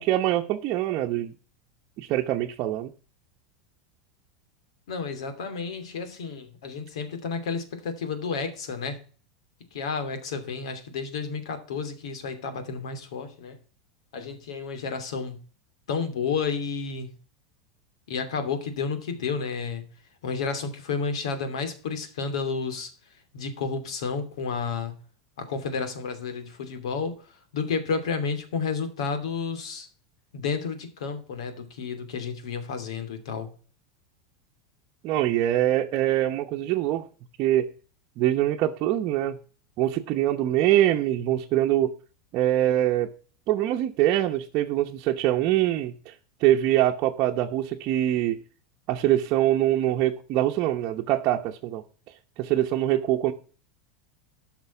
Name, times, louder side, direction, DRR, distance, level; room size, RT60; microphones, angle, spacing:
voice 1, 0.0-1.3 2.0-2.9 35.0-37.1 37.4-37.7 38.2-39.4 39.8-41.9 42.3-43.1 43.5-46.1 46.4-48.4 48.9-51.8 52.4-53.3, right 13 dB, 40° right, 0.9 m, -24 dB
voice 2, 4.9-9.0 9.7-13.6 14.1-15.4 15.9-17.1 18.1-19.9 20.2-22.9 23.3-25.0 25.4-27.1 27.5-29.9 30.3-33.5, left 5 dB, 90° left, 2.7 m, -31 dB
13.0 x 6.0 x 5.9 m
supercardioid pair, 165°, 3 cm